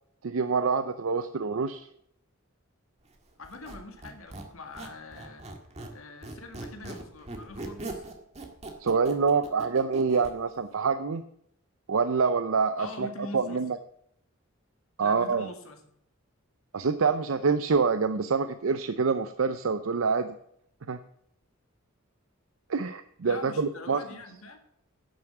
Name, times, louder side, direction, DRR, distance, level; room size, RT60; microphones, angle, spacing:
voice 1, 0.2-1.9 8.8-11.2 11.9-13.1 13.3-13.8 15.0-15.5 16.7-20.3 20.9-21.0 22.7-24.0, right 5 dB, 75° right, 11 dB, 0.6 m, -26 dB
voice 2, 3.4-5.5 5.9-8.0 12.8-13.6 15.0-15.8 23.2-24.6, left 2 dB, 80° left, 5 dB, 2.0 m, -43 dB
Squeak, 3.4-6.0 6.2-10.3, right 2 dB, 30° right, 1.8 m, -40 dB
10.5 x 7.2 x 7.8 m, 0.71 s
head